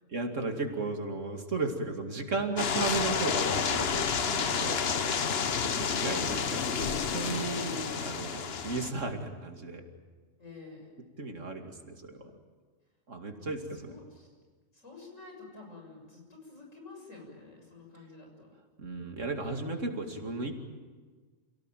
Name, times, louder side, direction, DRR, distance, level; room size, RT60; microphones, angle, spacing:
voice 1, 0.1-4.9 5.8-9.8 11.2-12.3 13.1-13.9 18.8-20.6, right 3 dB, 70° right, 4 dB, 2.7 m, -35 dB
sound 1, 2.6-8.9, left 6 dB, 55° left, 1.2 m, -30 dB
voice 2, 4.7-5.7 10.4-10.9 13.4-13.5 13.8-14.3 14.7-18.5, left 3 dB, 70° left, 1 dB, 7.5 m, -49 dB
28.5 x 17.5 x 9.2 m, 1.5 s
omnidirectional pair, 1.3 m